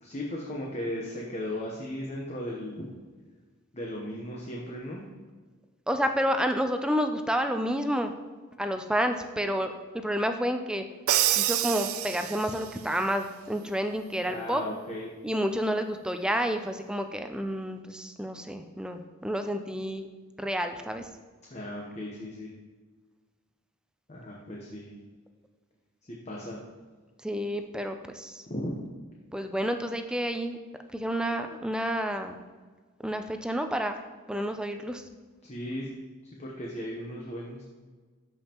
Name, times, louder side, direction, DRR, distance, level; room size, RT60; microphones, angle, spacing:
voice 1, 0.0-2.8 3.7-5.1 14.3-15.1 21.5-22.5 24.1-25.0 26.0-26.6 28.5-28.7 31.3-31.4 35.4-35.9 36.4-37.6, left 1 dB, 30° left, -2 dB, 0.9 m, -36 dB
voice 2, 5.9-8.1 8.6-9.7 10.0-10.9 11.4-14.6 15.2-20.1 20.4-21.1 27.2-28.4 29.3-30.6 30.9-32.4 33.0-35.0, equal, 5° right, 6 dB, 0.4 m, -30 dB
Crash cymbal, 11.1-12.7, right 13 dB, 90° right, 0.4 m, -27 dB
13.0 x 5.3 x 2.9 m, 1.4 s
head